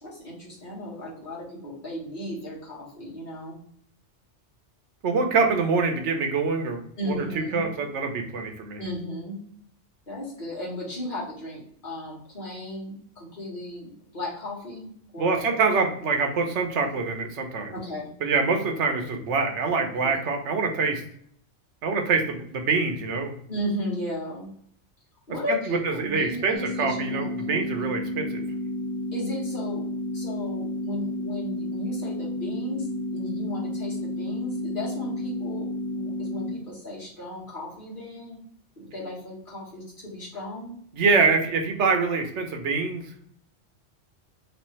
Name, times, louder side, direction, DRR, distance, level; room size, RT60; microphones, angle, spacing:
voice 1, 0.0-3.6 7.0-7.7 8.8-9.4 10.1-15.5 17.7-18.1 23.5-24.5 25.3-27.9 29.1-29.9 30.1-38.4 38.8-40.8, left 1 dB, 45° left, -6 dB, 1.8 m, -35 dB
voice 2, 5.0-6.8 7.1-8.8 15.2-17.7 18.2-21.0 21.8-23.3 25.7-28.4 40.9-43.1, right 4 dB, 85° right, 4 dB, 1.1 m, -25 dB
sound 1, 26.5-36.5, left 1 dB, ahead, 1.3 m, -31 dB
3.4 x 3.2 x 3.0 m, 0.63 s
omnidirectional pair, 1.2 m